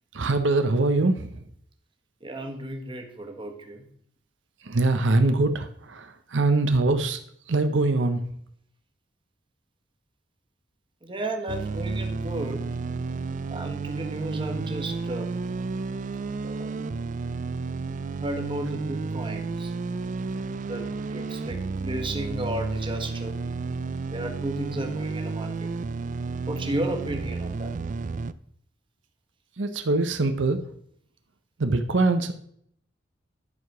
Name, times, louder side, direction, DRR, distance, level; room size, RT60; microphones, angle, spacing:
voice 1, 0.1-1.5 4.6-7.2 7.5-8.3 29.6-30.7 31.6-32.3, right 2 dB, 85° right, 8 dB, 0.8 m, -23 dB
voice 2, 2.2-3.9 11.0-12.7 13.5-15.3 16.4-17.0 18.2-19.7 20.7-23.4 24.1-25.7 26.5-27.7, right 1 dB, 30° right, 4 dB, 1.4 m, -34 dB
sound 1, 11.5-28.3, right 4 dB, 45° right, 0.4 m, -31 dB
11.0 x 4.8 x 6.0 m, 0.68 s
head